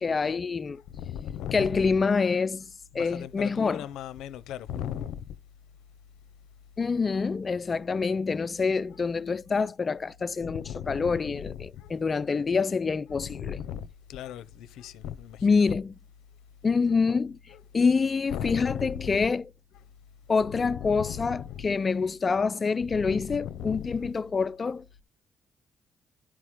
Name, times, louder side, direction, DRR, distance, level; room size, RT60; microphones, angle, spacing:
voice 1, 0.0-0.8 1.5-3.8 6.8-13.6 15.4-15.9 16.6-17.4 17.7-19.5 20.3-24.8, left 4 dB, 35° left, 0.4 m, -26 dB
voice 2, 0.9-2.0 2.9-5.4 8.9-9.0 10.4-11.9 13.1-15.8 17.5-17.6 18.3-19.3 19.7-19.8 20.3-21.7 22.9-24.1, left 10 dB, 85° left, 0.6 m, -37 dB
11.5 x 4.9 x 3.6 m
cardioid pair, 90°, 0 cm